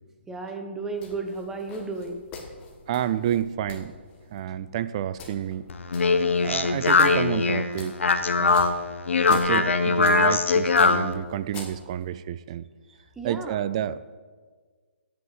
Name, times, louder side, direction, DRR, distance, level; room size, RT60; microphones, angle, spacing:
voice 1, 0.3-2.2 9.3-9.7 12.9-13.6, right 3 dB, 5° right, 4 dB, 0.9 m, -34 dB
sound 1, 1.0-12.1, left 4 dB, 15° left, 1.5 m, -47 dB
voice 2, 2.9-3.9 4.3-5.7 6.4-8.0 8.4-8.6 9.3-12.6 13.2-14.0, right 10 dB, 30° right, 15 dB, 0.3 m, -29 dB
Speech, 5.7-11.1, left 4 dB, 75° left, 0.9 m, -21 dB
8.1 x 7.9 x 7.9 m, 1.5 s
hypercardioid pair, 155°, 7 cm